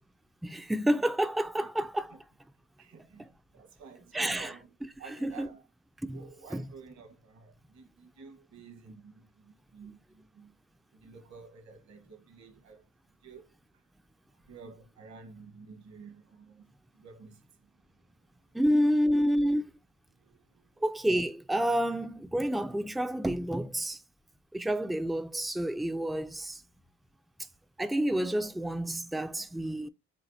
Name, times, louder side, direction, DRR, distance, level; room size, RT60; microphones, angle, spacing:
voice 1, 0.4-2.2 3.2-3.3 4.1-4.5 5.2-5.5 6.0-6.2 6.5-6.7 18.5-19.6 20.8-24.0 24.5-26.6 27.8-29.9, equal, ahead, 0.3 m, -29 dB
voice 2, 2.8-3.3 3.5-4.7 5.0-5.7 6.1-10.5 10.9-12.8 13.2-13.8 14.4-17.7 18.0-18.1 20.2-20.8, right 5 dB, 65° right, 1.4 m, -51 dB
7.2 x 2.5 x 2.7 m
cardioid pair, 90°, 30 cm